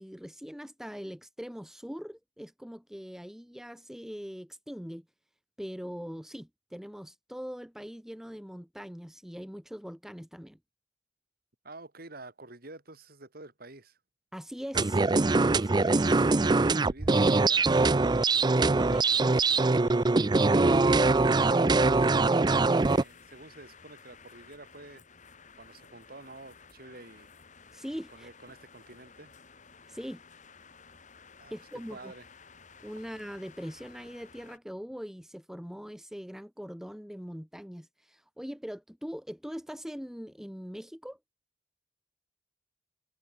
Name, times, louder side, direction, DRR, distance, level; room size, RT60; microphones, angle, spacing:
voice 1, 0.0-5.0 5.6-10.6 14.3-15.0 15.5-16.0 18.7-19.4 27.7-28.3 29.9-30.2 31.5-32.1 32.8-41.2, equal, ahead, 0.9 m, -41 dB
voice 2, 11.6-14.0 16.0-18.1 20.2-20.8 21.2-25.0 25.6-27.3 28.1-29.3 31.4-32.3, right 2 dB, 55° right, 3.6 m, -48 dB
sound 1, 14.7-23.0, right 3 dB, 25° right, 0.5 m, -23 dB
sound 2, 18.9-34.6, left 5 dB, 40° left, 3.2 m, -55 dB
head